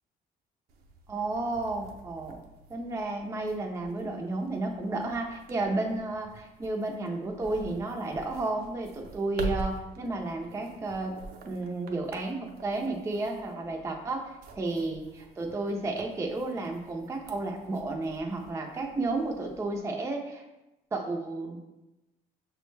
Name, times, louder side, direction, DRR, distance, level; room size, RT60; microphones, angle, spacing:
sound 1, 0.7-19.8, right 4 dB, 65° right, 0.5 m, -45 dB
voice 1, 1.1-2.4 2.7-11.2 11.4-20.4 20.9-21.8, right 2 dB, 15° right, 1 dB, 0.5 m, -32 dB
6.0 x 2.1 x 3.1 m, 0.98 s
cardioid pair, 110°, 17 cm